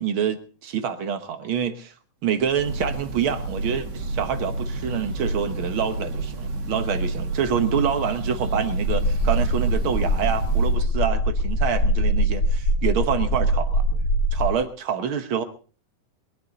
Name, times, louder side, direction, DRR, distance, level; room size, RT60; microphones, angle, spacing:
voice 1, 0.0-1.9 2.2-14.0 14.3-15.4, right 8 dB, 60° right, 9 dB, 1.4 m, -26 dB
Breathing / Bird, 2.4-10.9, right 2 dB, 40° right, 1.7 m, -29 dB
sound 1, 8.8-14.5, equal, 35° left, 2.7 m, -22 dB
22.0 x 11.5 x 4.0 m, 0.39 s
omnidirectional pair, 3.7 m